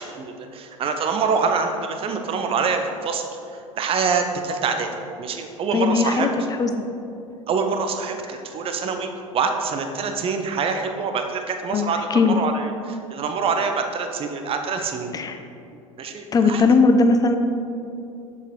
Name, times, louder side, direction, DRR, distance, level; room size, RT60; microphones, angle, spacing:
voice 1, 0.0-4.9 5.2-6.3 7.5-15.2 15.7-16.6, right 5 dB, 30° right, 5 dB, 0.9 m, -25 dB
voice 2, 5.7-6.3 6.6-6.7 11.7-12.4 15.1-15.4 16.3-17.4, left 4 dB, 20° left, 7 dB, 0.7 m, -18 dB
7.0 x 6.8 x 4.5 m, 2.7 s
figure-of-eight pair, 70°, 17 cm